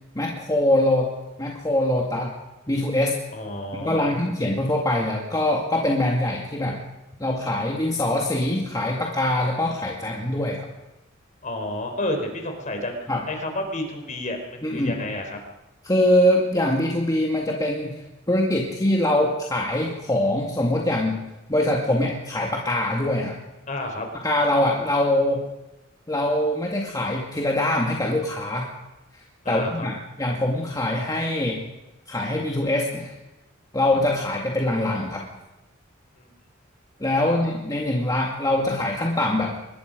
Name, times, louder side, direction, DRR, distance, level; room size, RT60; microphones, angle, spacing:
voice 1, 0.1-1.1 1.4-2.3 2.7-3.2 3.7-6.8 7.2-10.7 13.1-13.2 14.6-15.0 15.9-17.9 18.3-21.2 21.5-23.3 24.2-25.4 26.1-28.7 29.5-31.6 32.1-33.2 33.7-35.2 37.0-39.6, left 1 dB, 20° left, -1 dB, 2.2 m, -23 dB
voice 2, 3.3-4.2 11.4-15.4 23.7-24.1 29.4-29.9 36.2-36.3 37.2-37.4, left 1 dB, 40° left, 4 dB, 4.1 m, -31 dB
24.5 x 20.5 x 5.2 m, 1.0 s
head